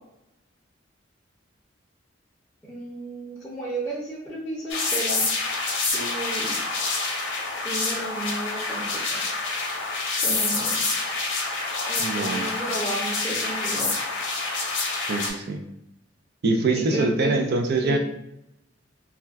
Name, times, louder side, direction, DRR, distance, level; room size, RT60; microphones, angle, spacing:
voice 1, 2.7-5.2 5.9-6.6 7.6-9.2 10.2-11.0 11.9-13.9 16.9-17.3 17.8-18.0, right 1 dB, 5° left, -6 dB, 0.6 m, -32 dB
sound 1, 4.7-15.3, left 3 dB, 65° left, 0.7 m, -27 dB
voice 2, 12.0-12.5 15.1-15.6 16.4-18.0, right 3 dB, 55° right, 4 dB, 0.4 m, -24 dB
2.4 x 2.2 x 3.4 m, 0.83 s
head